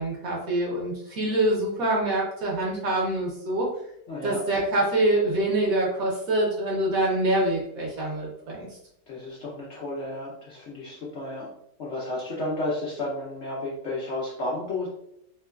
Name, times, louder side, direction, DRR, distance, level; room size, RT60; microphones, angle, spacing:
voice 1, 0.0-3.7 4.2-8.7, right 1 dB, 65° right, -3 dB, 1.0 m, -25 dB
voice 2, 4.1-4.4 9.1-11.5 11.8-14.9, left 2 dB, 85° left, -6 dB, 0.6 m, -32 dB
3.1 x 2.1 x 2.2 m, 0.75 s
omnidirectional pair, 1.9 m